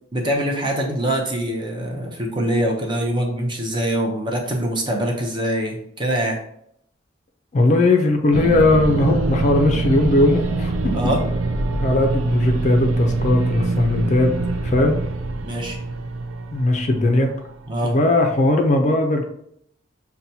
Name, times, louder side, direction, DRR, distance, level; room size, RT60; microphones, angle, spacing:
voice 1, 0.1-6.4 10.9-11.2 15.4-15.8 17.7-18.0, right 1 dB, 25° right, 1 dB, 0.6 m, -23 dB
voice 2, 7.5-11.0 11.8-14.3 14.6-15.0 16.5-17.3 17.8-19.3, left 2 dB, 35° left, 3 dB, 0.4 m, -18 dB
sound 1, 8.3-17.8, right 2 dB, 85° right, 0.4 m, -24 dB
5.6 x 2.2 x 2.7 m, 0.71 s
head